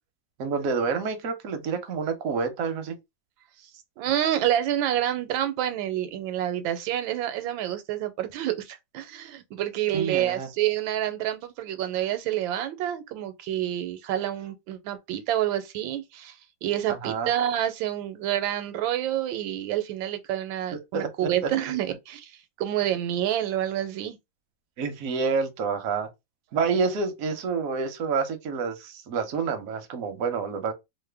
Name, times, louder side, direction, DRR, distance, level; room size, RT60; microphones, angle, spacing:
voice 1, 0.4-3.0 9.9-10.5 16.9-17.3 20.9-21.3 24.8-26.1 26.5-30.7, right 5 dB, 65° right, 0.9 m, -28 dB
voice 2, 4.0-16.3 16.6-22.3 22.6-24.2, right 11 dB, 85° right, 1.3 m, -28 dB
3.1 x 2.1 x 3.3 m
omnidirectional pair, 2.1 m